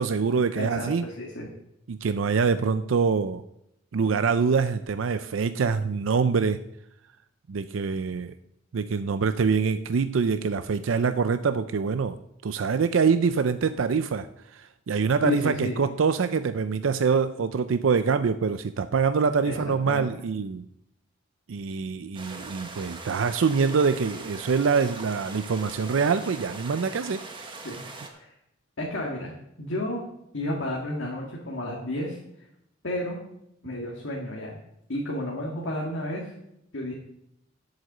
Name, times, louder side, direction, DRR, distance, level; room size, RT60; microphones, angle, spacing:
voice 1, 0.0-1.0 1.9-3.4 3.9-6.6 7.5-8.3 8.7-12.2 12.4-14.3 14.5-20.6 21.5-27.6, right 5 dB, 80° right, 11 dB, 0.5 m, -25 dB
voice 2, 0.6-1.5 15.2-15.8 19.4-20.1 27.6-27.8 28.1-28.3 28.8-30.1 30.3-32.2 32.8-33.2 33.6-34.6 34.9-36.3 36.7-36.9, left 1 dB, 70° left, -2 dB, 1.8 m, -31 dB
sound 1, 22.1-28.1, right 3 dB, 25° right, 1.2 m, -41 dB
8.1 x 7.9 x 6.6 m, 0.80 s
head